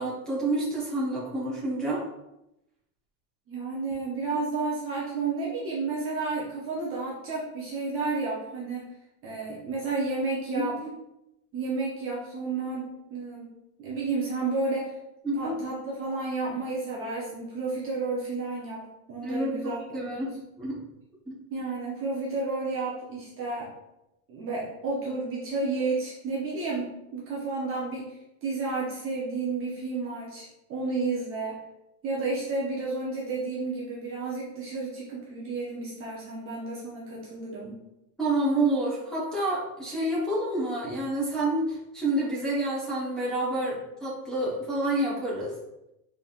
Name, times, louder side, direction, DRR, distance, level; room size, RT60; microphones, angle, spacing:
voice 1, 0.0-2.0 10.5-10.7 15.2-15.5 19.2-20.8 21.3-21.4 38.2-45.5, right 1 dB, ahead, -9 dB, 0.9 m, -28 dB
voice 2, 3.5-8.9 9.2-10.8 11.5-13.5 13.8-14.9 15.3-18.8 19.1-19.8 20.1-20.3 21.5-23.7 24.3-31.6 32.0-37.8, right 3 dB, 30° right, -5 dB, 0.7 m, -31 dB
4.1 x 3.4 x 2.4 m, 0.88 s
supercardioid pair, 155°, 47 cm